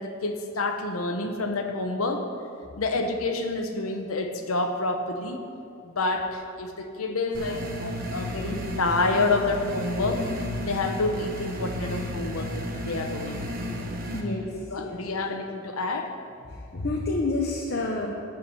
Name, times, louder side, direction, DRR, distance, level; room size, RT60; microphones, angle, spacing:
voice 1, 0.0-2.3 2.8-5.4 5.8-10.3 10.6-13.4 14.7-16.1, left 3 dB, 90° left, 4 dB, 1.0 m, -28 dB
sound 1, 7.3-14.2, equal, 45° right, 1.1 m, -33 dB
voice 2, 14.1-14.4 14.8-15.0 16.7-18.1, left 2 dB, 50° left, -1 dB, 0.9 m, -28 dB
11.5 x 4.7 x 8.4 m, 2.5 s
head